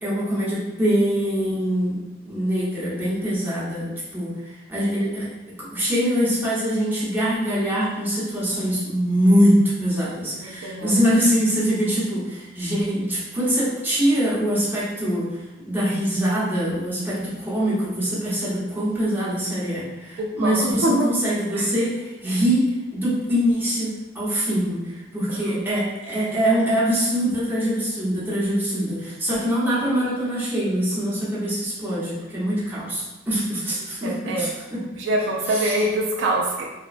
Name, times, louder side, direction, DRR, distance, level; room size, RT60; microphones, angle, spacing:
voice 1, 0.0-5.3 5.6-22.6 22.9-34.8 35.5-35.8, equal, 10° right, -9 dB, 0.8 m, -23 dB
voice 2, 10.4-11.1 20.2-21.1 21.5-21.7 25.3-25.7 33.8-34.5 35.0-36.6, right 1 dB, 65° right, -1 dB, 0.3 m, -25 dB
2.9 x 2.1 x 2.4 m, 1.1 s
head